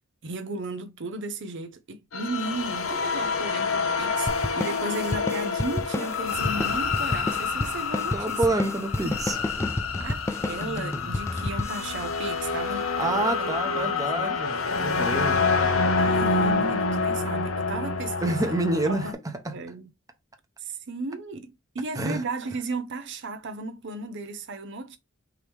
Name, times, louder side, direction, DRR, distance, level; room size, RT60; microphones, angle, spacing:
voice 1, 0.2-4.3 4.6-8.4 10.0-14.4 16.0-18.5 18.9-19.1 19.5-19.9 20.6-25.0, right 2 dB, 60° right, 0.7 m, -35 dB
sound 1, 2.1-19.1, left 4 dB, 85° left, 0.9 m, -27 dB
sound 2, 4.3-13.1, left 2 dB, 15° left, 0.3 m, -32 dB
voice 2, 8.1-9.4 13.0-15.4 18.2-19.1 19.4-19.5 21.9-22.2, right 2 dB, 15° right, 0.9 m, -27 dB
4.8 x 3.1 x 3.5 m
head